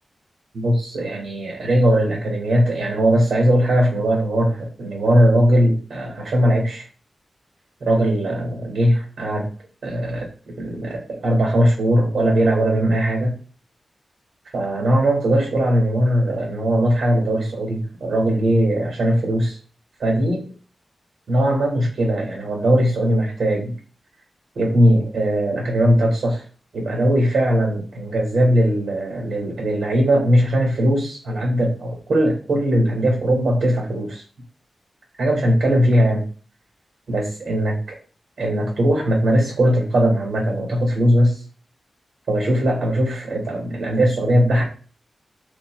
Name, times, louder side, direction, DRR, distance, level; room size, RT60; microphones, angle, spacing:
voice 1, 0.5-6.8 7.8-9.5 9.8-10.3 10.6-13.4 14.5-19.6 20.0-20.5 21.3-23.7 24.5-26.4 26.7-34.2 35.2-36.2 37.1-37.7 38.4-41.4 42.3-44.6, equal, 90° right, -1 dB, 1.7 m, -19 dB
7.5 x 3.0 x 2.2 m, 0.39 s
wide cardioid pair, 120°, 0 cm